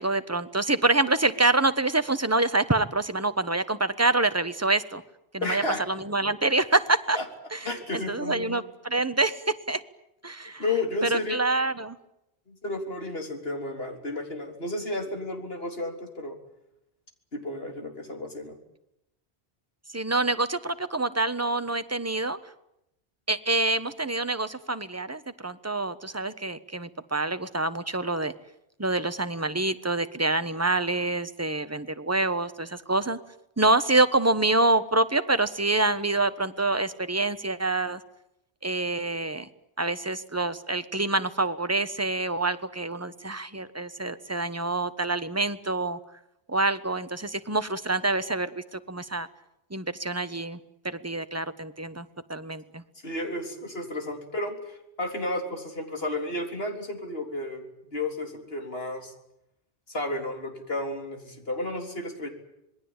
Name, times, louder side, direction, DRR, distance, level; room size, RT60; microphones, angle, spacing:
voice 1, 0.0-5.0 5.3-7.2 7.5-7.7 7.9-9.8 10.2-10.6 11.0-12.0 19.9-22.4 23.3-28.3 28.8-33.2 33.6-38.0 38.6-39.5 39.8-46.0 46.5-49.3 49.7-50.6 50.8-52.8, right 2 dB, 15° right, 11 dB, 1.1 m, -26 dB
voice 2, 5.4-5.8 7.1-7.2 7.7-8.6 10.6-11.4 12.5-16.4 17.3-18.6 53.0-59.1 59.9-62.3, left 2 dB, 65° left, 4 dB, 4.1 m, -32 dB
26.5 x 20.5 x 8.9 m, 0.84 s
omnidirectional pair, 1.1 m